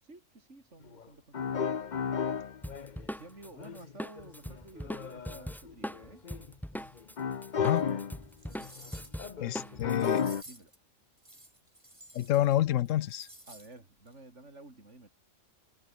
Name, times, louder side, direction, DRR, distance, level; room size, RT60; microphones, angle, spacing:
voice 1, 0.0-1.9 2.8-6.3 9.3-9.9 10.5-10.7 13.5-15.1, right 2 dB, 65° right, 4.9 m, -52 dB
sound 1, 1.0-1.1 1.3-3.1 3.6-6.5 7.0-8.2 8.5-10.4, left 6 dB, 40° left, 0.9 m, -34 dB
Drum kit, 2.6-7.2 7.4-10.0, equal, ahead, 1.8 m, -41 dB
voice 2, 7.6-8.0 9.4-10.2 12.1-13.3, left 13 dB, 80° left, 1.0 m, -28 dB
sound 2, 7.7-7.8 8.3-9.3 9.9-10.8 11.2-12.6 12.8-13.7 14.1-14.2, right 1 dB, 25° right, 5.2 m, -52 dB
omnidirectional pair, 1.3 m